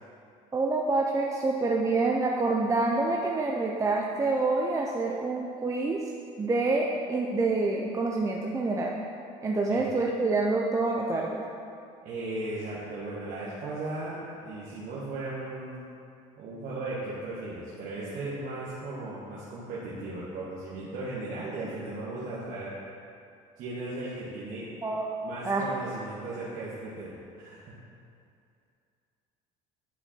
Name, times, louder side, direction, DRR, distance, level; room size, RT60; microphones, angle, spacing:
voice 1, 0.5-6.0 6.4-8.9 9.4-11.4 24.8-25.0 25.4-25.6, right 3 dB, 20° right, -1 dB, 0.6 m, -27 dB
voice 2, 12.0-15.7 16.4-22.8 23.6-24.7 25.2-27.6, right 2 dB, 65° right, -7 dB, 1.5 m, -36 dB
9.9 x 4.3 x 4.4 m, 2.5 s
supercardioid pair, 95°, 15 cm